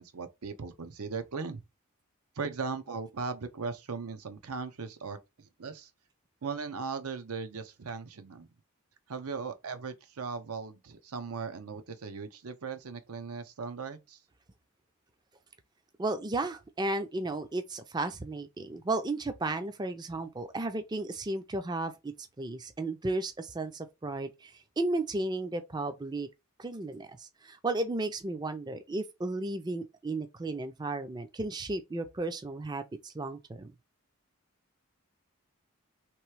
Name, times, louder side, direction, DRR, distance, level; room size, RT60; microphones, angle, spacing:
voice 1, 0.0-1.6 2.4-5.9 6.4-8.5 9.1-14.2, right 5 dB, 80° right, 0.7 m, -38 dB
voice 2, 16.0-26.3 26.6-33.7, right 2 dB, 20° right, 0.4 m, -34 dB
3.3 x 3.0 x 4.6 m
head